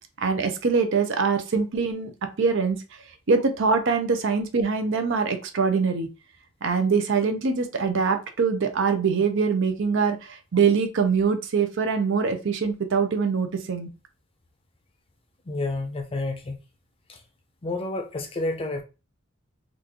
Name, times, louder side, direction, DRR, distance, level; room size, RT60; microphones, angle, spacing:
voice 1, 0.2-2.8 3.3-6.1 6.6-13.9, right 5 dB, 60° right, 0.5 m, -23 dB
voice 2, 15.5-16.6 17.1-17.2 17.6-18.8, left 2 dB, 25° left, 0.5 m, -29 dB
2.9 x 2.5 x 3.5 m
head